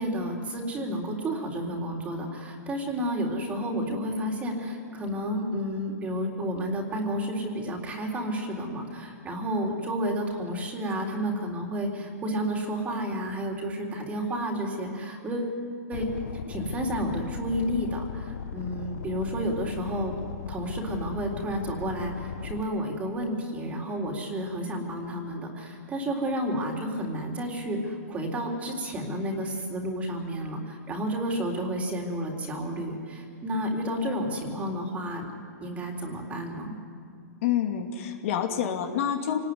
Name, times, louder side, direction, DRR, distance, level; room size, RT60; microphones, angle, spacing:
voice 1, 0.0-15.6 15.9-16.1 16.5-20.2 20.5-22.1 22.4-35.3 35.6-36.8, equal, 15° right, 1 dB, 3.8 m, -31 dB
sound 1, 15.9-22.6, left 8 dB, 85° left, 0.9 m, -37 dB
voice 2, 37.4-39.4, left 9 dB, 50° left, 4 dB, 2.7 m, -27 dB
27.5 x 20.0 x 9.7 m, 2.4 s
hypercardioid pair, 160°, 9 cm